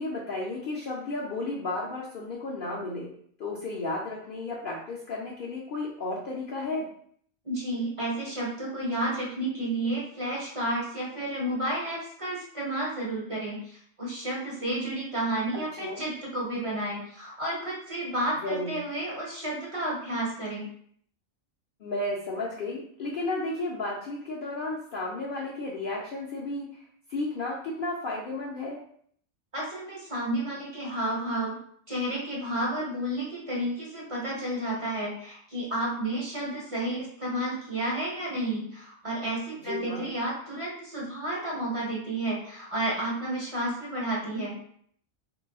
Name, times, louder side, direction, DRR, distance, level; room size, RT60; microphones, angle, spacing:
voice 1, 0.0-3.1 3.4-6.9 15.5-16.0 18.4-18.8 21.8-26.8 27.1-28.8 39.6-40.1, left 2 dB, 60° left, -4 dB, 0.6 m, -33 dB
voice 2, 7.4-20.7 29.5-31.6 31.9-44.6, right 1 dB, 30° right, -5 dB, 0.8 m, -31 dB
3.8 x 2.3 x 2.3 m, 0.62 s
omnidirectional pair, 1.3 m